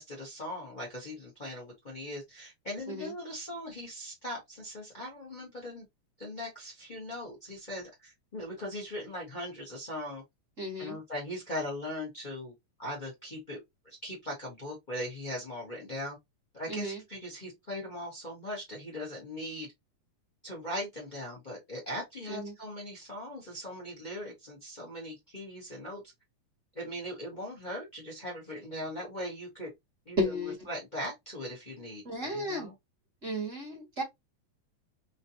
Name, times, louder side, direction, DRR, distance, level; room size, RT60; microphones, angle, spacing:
voice 1, 0.0-5.8 6.2-10.2 10.8-12.5 12.8-13.6 13.8-16.2 16.5-19.7 20.4-26.0 26.7-29.7 30.1-30.2 30.7-32.7, left 1 dB, 75° left, 0.4 m, -39 dB
voice 2, 10.6-11.0 16.7-17.0 22.3-22.5 30.2-30.7 32.0-32.7 33.2-34.0, equal, 30° right, 1.7 m, -33 dB
5.0 x 2.8 x 2.7 m
omnidirectional pair, 3.4 m